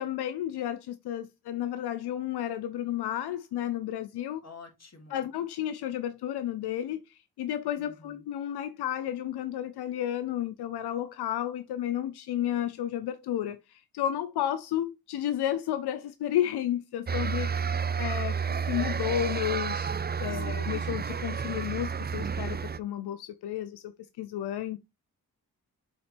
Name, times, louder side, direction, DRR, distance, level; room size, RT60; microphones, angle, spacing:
voice 1, 0.0-4.4 5.1-17.7 18.0-18.4 18.7-19.9 20.2-24.8, left 11 dB, 85° left, 0.6 m, -32 dB
voice 2, 4.4-5.2 7.8-8.2 20.3-20.9, left 4 dB, 40° left, 2.6 m, -49 dB
sound 1, 17.1-22.8, right 6 dB, 25° right, 0.5 m, -31 dB
7.6 x 4.1 x 3.3 m
supercardioid pair, 45°, 38 cm